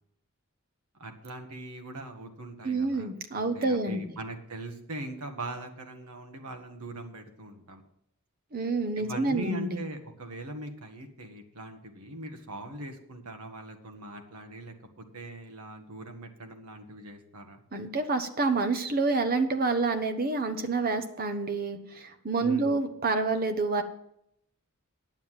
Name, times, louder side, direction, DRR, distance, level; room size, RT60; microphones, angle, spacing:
voice 1, 1.0-3.1 3.3-7.8 9.0-17.6 22.4-22.8, right 2 dB, 85° right, 4 dB, 1.6 m, -41 dB
voice 2, 2.6-4.0 8.5-9.8 17.7-23.8, right 3 dB, 40° right, 8 dB, 1.1 m, -28 dB
10.0 x 7.1 x 7.5 m, 0.75 s
head